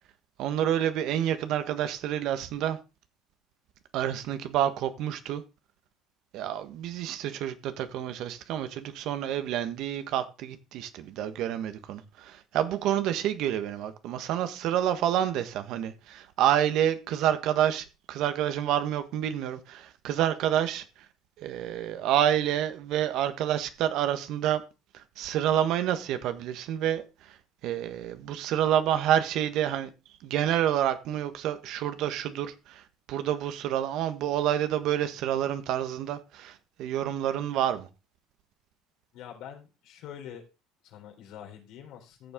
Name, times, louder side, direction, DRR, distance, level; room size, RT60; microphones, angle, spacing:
voice 1, 0.4-2.8 3.9-5.4 6.3-20.8 21.4-24.6 24.9-27.4 27.6-29.9 30.2-37.9, right 10 dB, 65° right, 1.4 m, -28 dB
voice 2, 39.1-40.4 40.8-42.3, left 9 dB, 70° left, 3.8 m, -45 dB
14.0 x 7.3 x 3.8 m
supercardioid pair, 105°, 0 cm